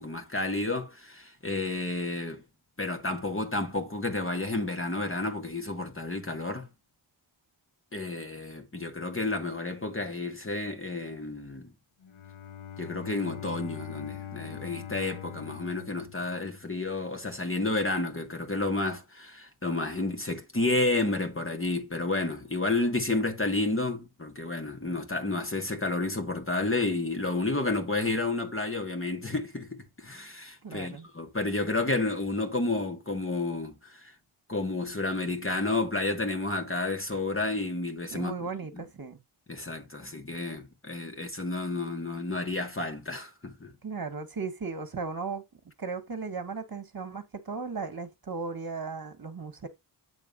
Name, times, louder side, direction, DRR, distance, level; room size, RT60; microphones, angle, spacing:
voice 1, 0.0-2.4 2.8-6.7 7.9-11.7 12.8-34.1 34.5-38.5 39.5-43.7, left 2 dB, 25° left, 2.1 m, -31 dB
Bowed string instrument, 12.0-17.0, left 9 dB, 70° left, 1.0 m, -42 dB
voice 2, 30.6-31.1 38.1-39.2 43.8-45.4 45.8-49.7, right 4 dB, 45° right, 1.9 m, -36 dB
9.1 x 3.7 x 5.3 m
wide cardioid pair, 105°, 49 cm